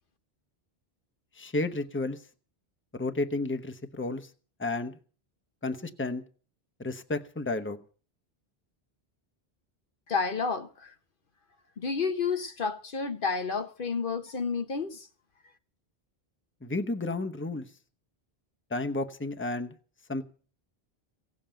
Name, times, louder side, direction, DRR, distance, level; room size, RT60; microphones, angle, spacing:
voice 1, 1.3-2.2 2.9-4.3 4.6-5.0 5.6-6.2 6.8-7.8 16.6-17.7 18.7-19.8 20.1-20.2, left 2 dB, 10° left, 1.0 m, -32 dB
voice 2, 10.1-10.9 11.8-15.1, left 5 dB, 60° left, 1.1 m, -30 dB
17.0 x 7.4 x 9.0 m
omnidirectional pair, 1.0 m